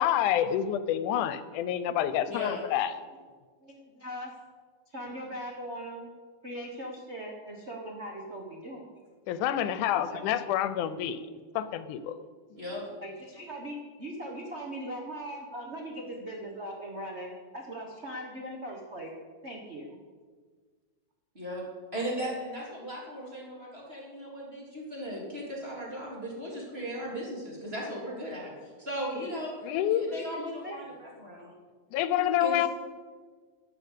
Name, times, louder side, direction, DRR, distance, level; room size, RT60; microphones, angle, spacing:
voice 1, 0.0-3.0 9.3-11.2 11.6-12.2 29.6-30.2 31.9-32.7, left 10 dB, 85° left, 13 dB, 2.2 m, -28 dB
voice 2, 2.2-2.7 10.3-10.4 12.5-12.9 21.3-21.6 21.9-28.5 28.8-29.5 29.9-31.5 32.4-32.7, equal, 20° right, -3 dB, 3.5 m, -37 dB
voice 3, 3.6-4.3 4.9-6.1 6.4-8.9 9.9-10.4 13.0-19.1 19.4-20.0 29.1-29.4 30.1-31.0, equal, 35° right, -1 dB, 1.1 m, -40 dB
12.0 x 8.8 x 8.2 m, 1.5 s
omnidirectional pair, 3.5 m